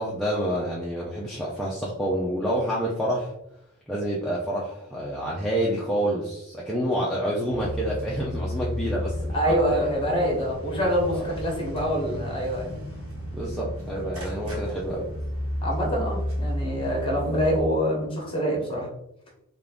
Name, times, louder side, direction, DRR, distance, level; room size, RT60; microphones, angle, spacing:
voice 1, 0.0-3.3 3.9-9.9 11.1-11.3 13.3-15.1, equal, ahead, -6 dB, 0.4 m, -28 dB
sound 1, 7.5-17.6, equal, 65° right, 1.2 m, -32 dB
voice 2, 9.3-12.9 15.6-18.9, equal, 25° left, -1 dB, 1.0 m, -25 dB
3.5 x 2.4 x 3.5 m, 0.80 s
head